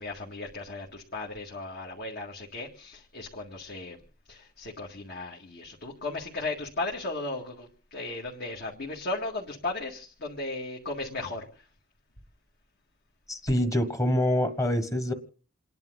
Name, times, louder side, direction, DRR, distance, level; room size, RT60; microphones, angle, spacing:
voice 1, 0.0-4.0 4.3-11.5, left 2 dB, 55° left, -2 dB, 2.1 m, -36 dB
voice 2, 13.3-15.1, left 1 dB, 15° left, 9 dB, 1.4 m, -25 dB
28.5 x 10.5 x 4.0 m, 0.41 s
head